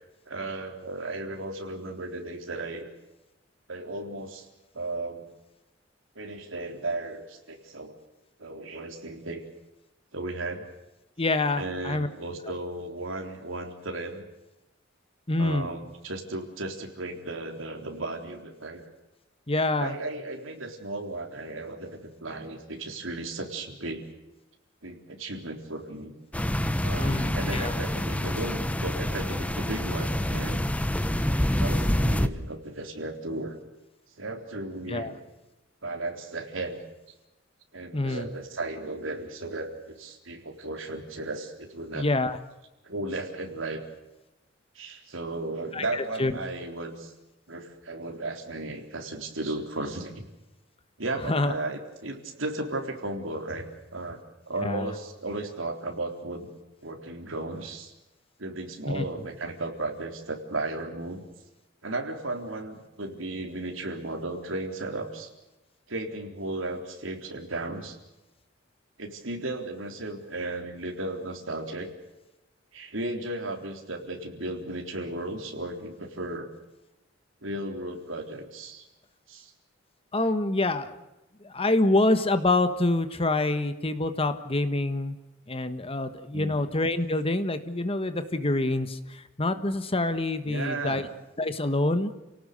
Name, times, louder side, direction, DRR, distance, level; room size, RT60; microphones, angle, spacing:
voice 1, 0.3-2.9 3.7-4.5 4.7-5.3 6.2-8.0 8.4-9.4 10.1-10.7 11.6-14.2 15.4-18.8 19.8-24.0 24.8-26.1 26.8-30.7 31.6-33.6 34.2-35.1 35.8-36.8 37.7-42.1 42.8-43.8 44.8-47.1 47.5-50.3 51.0-53.7 53.9-54.2 54.5-56.5 56.8-57.9 58.4-61.2 61.8-65.3 65.9-68.0 69.0-71.9 72.7-76.5 77.4-78.9 79.3-79.5 86.3-86.6 90.5-91.1, right 2 dB, 75° right, 3 dB, 3.7 m, -35 dB
voice 2, 11.2-12.1 15.3-15.7 19.5-19.9 27.0-27.7 34.9-35.1 37.9-38.3 41.9-42.4 45.7-46.3 51.3-51.5 54.6-54.9 59.0-59.1 80.1-80.9 81.4-85.2 85.5-91.1 91.4-92.1, left 2 dB, 30° left, 10 dB, 1.5 m, -26 dB
sound 1, 26.3-32.3, left 1 dB, 5° left, 0.9 m, -27 dB
29.5 x 18.5 x 6.8 m, 0.98 s
head